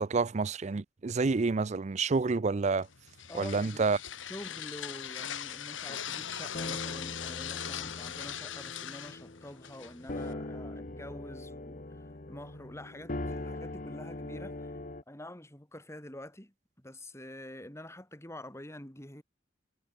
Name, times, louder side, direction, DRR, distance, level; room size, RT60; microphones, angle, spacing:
voice 1, 0.0-2.9 3.3-4.0, right 4 dB, 35° right, 0.5 m, -28 dB
sound 1, 2.8-10.3, left 10 dB, 90° left, 1.7 m, -40 dB
voice 2, 3.3-3.9 4.3-14.8 15.1-19.2, left 1 dB, 15° left, 4.4 m, -47 dB
sound 2, 6.0-15.0, left 2 dB, 45° left, 1.3 m, -41 dB
head